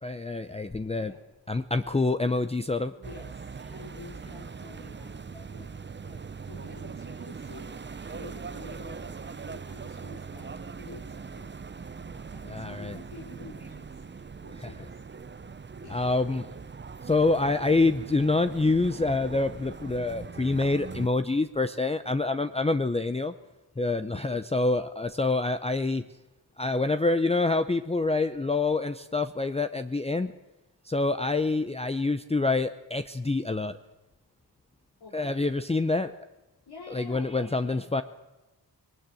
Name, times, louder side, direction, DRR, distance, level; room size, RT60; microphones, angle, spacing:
voice 1, 0.0-1.1 1.5-2.9 5.3-5.4 12.4-13.0 14.5-14.9 15.9-16.5 17.0-23.3 23.8-26.0 26.6-30.3 30.8-33.8 35.1-36.1 36.9-38.0, left 3 dB, 15° left, 10 dB, 0.6 m, -26 dB
voice 2, 2.9-5.2 5.5-5.7 6.0-11.5 12.1-14.0 14.4-15.0 15.8-16.1 24.1-24.5 35.0-35.5 36.7-37.9, left 3 dB, 70° left, -3 dB, 3.3 m, -49 dB
sound 1, 3.0-21.1, right 5 dB, 25° right, 0.6 m, -41 dB
20.0 x 18.5 x 7.7 m, 1.1 s
cardioid pair, 70°, 41 cm